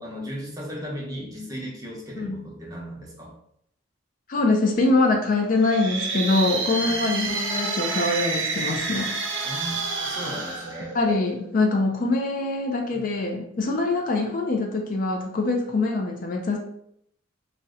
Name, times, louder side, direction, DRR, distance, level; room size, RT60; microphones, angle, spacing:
voice 1, 0.0-3.3 6.8-7.0 9.4-10.9 12.9-13.1, equal, 20° right, -4 dB, 0.7 m, -36 dB
voice 2, 4.3-9.1 10.9-16.6, left 2 dB, 45° left, 1 dB, 0.4 m, -24 dB
sound 1, 5.5-11.5, right 3 dB, 65° right, 0.5 m, -29 dB
2.7 x 2.1 x 3.6 m, 0.73 s
head